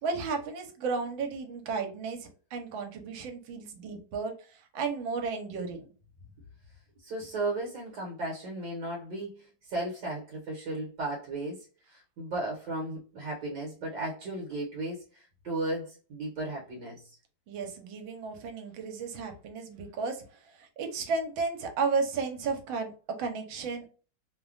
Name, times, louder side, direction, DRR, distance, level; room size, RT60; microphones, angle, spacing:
voice 1, 0.0-4.3 4.7-5.9 17.5-20.2 20.6-22.9 23.2-23.9, right 4 dB, 85° right, 5 dB, 1.4 m, -33 dB
voice 2, 7.0-11.6 11.9-17.1, right 2 dB, 65° right, -1 dB, 1.4 m, -35 dB
3.2 x 2.1 x 2.4 m, 0.37 s
omnidirectional pair, 2.1 m